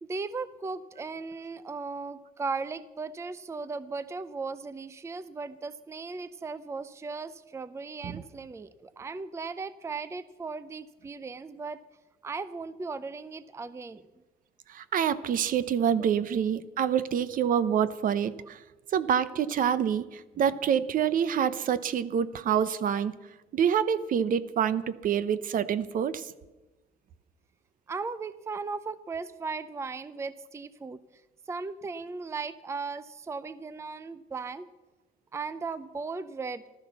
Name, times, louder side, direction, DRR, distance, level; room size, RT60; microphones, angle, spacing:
voice 1, 0.0-11.8 12.2-14.0 16.0-16.1 27.9-31.0 31.5-34.7 35.3-36.6, right 4 dB, 15° right, 15 dB, 0.5 m, -37 dB
voice 2, 14.7-18.6 18.9-23.1 23.5-26.3, right 8 dB, 55° right, 15 dB, 0.8 m, -27 dB
14.5 x 13.0 x 6.9 m, 1.1 s
cardioid pair, 110°, 17 cm